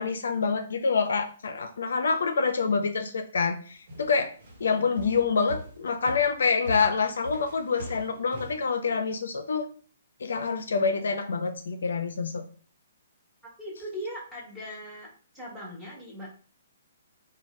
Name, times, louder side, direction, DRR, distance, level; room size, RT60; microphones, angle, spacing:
voice 1, 0.0-4.3 4.6-9.6 10.2-12.4, left 5 dB, 75° left, 7 dB, 0.4 m, -26 dB
sound 1, 3.9-8.7, equal, 55° right, 1.1 m, -41 dB
voice 2, 13.6-15.1 15.3-16.3, equal, 5° right, -6 dB, 1.4 m, -39 dB
3.1 x 2.2 x 3.1 m, 0.41 s
hypercardioid pair, 140°, 0 cm